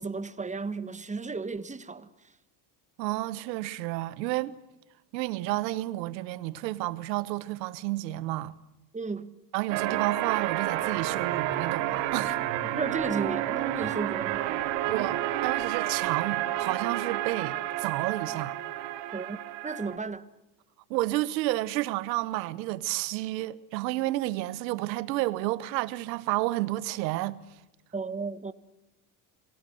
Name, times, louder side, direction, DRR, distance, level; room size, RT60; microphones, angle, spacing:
voice 1, 0.0-2.1 8.9-9.4 12.3-14.6 19.1-19.4 19.6-20.3 27.9-28.5, right 4 dB, 15° right, 1.6 m, -34 dB
voice 2, 3.0-4.6 5.1-8.6 9.5-12.4 13.8-13.9 14.9-18.5 20.9-27.4, right 17 dB, 90° right, 1.3 m, -31 dB
sound 1, 9.7-20.0, right 13 dB, 60° right, 2.7 m, -30 dB
27.0 x 17.5 x 7.9 m
supercardioid pair, 95°, 49 cm